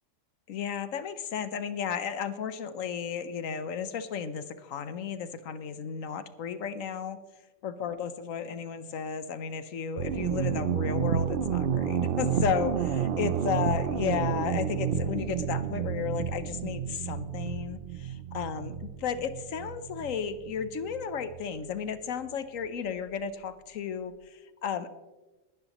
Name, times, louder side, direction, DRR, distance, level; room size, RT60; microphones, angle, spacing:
voice 1, 0.5-7.2 7.6-24.9, left 7 dB, 80° left, 12 dB, 1.2 m, -34 dB
sound 1, 10.0-21.5, right 8 dB, 60° right, 0.6 m, -30 dB
20.5 x 10.5 x 3.0 m, 1.1 s
omnidirectional pair, 1.4 m